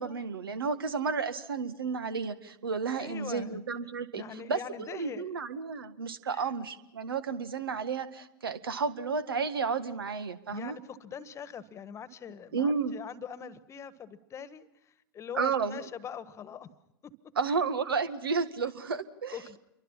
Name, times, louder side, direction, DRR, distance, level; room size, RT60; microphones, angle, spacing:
voice 1, 0.0-4.2 4.5-10.8 12.5-12.9 15.3-15.8 17.4-19.4, right 5 dB, 75° right, 12 dB, 1.9 m, -32 dB
voice 2, 2.9-3.6 4.1-5.3 6.3-6.5 10.5-16.7 17.0-17.1 19.3-19.6, left 7 dB, 25° left, 14 dB, 1.4 m, -43 dB
29.0 x 24.0 x 5.8 m, 0.87 s
figure-of-eight pair, 100°, 12 cm